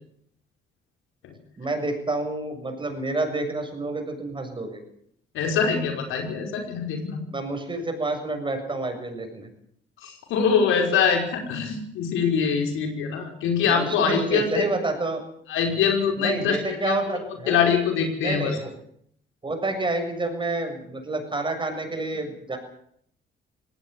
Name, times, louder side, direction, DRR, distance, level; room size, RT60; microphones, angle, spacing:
voice 1, 1.6-4.8 7.3-9.5 13.6-15.2 16.2-17.6 18.2-18.7 19.4-22.6, right 2 dB, 25° right, 5 dB, 7.4 m, -29 dB
voice 2, 5.3-7.2 10.0-14.6 15.5-17.2 17.5-18.6, left 6 dB, 90° left, 4 dB, 5.5 m, -24 dB
19.0 x 17.0 x 9.9 m, 0.67 s
cardioid pair, 90°, 20 cm